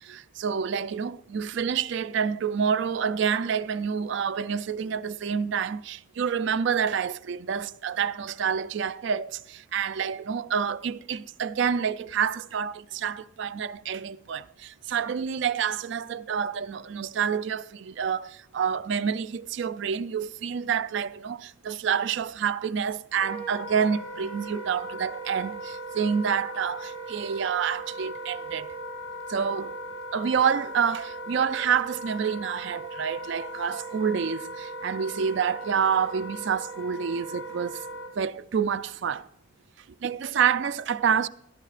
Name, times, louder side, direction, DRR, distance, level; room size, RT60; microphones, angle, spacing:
voice 1, 0.0-28.7 29.3-29.8 30.1-37.8 38.2-39.3 40.0-41.3, right 7 dB, 60° right, 0.3 m, -28 dB
Wind instrument woodwind instrument, 23.1-38.1, right 1 dB, 90° left, 2.6 m, -38 dB
19.0 x 13.0 x 2.5 m
head